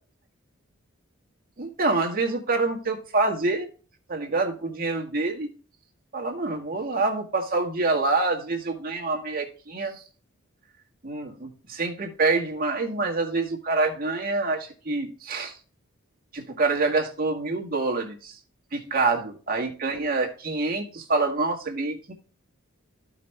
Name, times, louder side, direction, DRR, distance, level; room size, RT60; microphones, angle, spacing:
voice 1, 1.6-3.7 4.1-5.5 6.1-10.0 11.0-15.6 16.3-18.4 18.7-22.1, right 3 dB, 45° right, 2 dB, 1.8 m, -26 dB
14.0 x 5.1 x 3.3 m, 0.37 s
head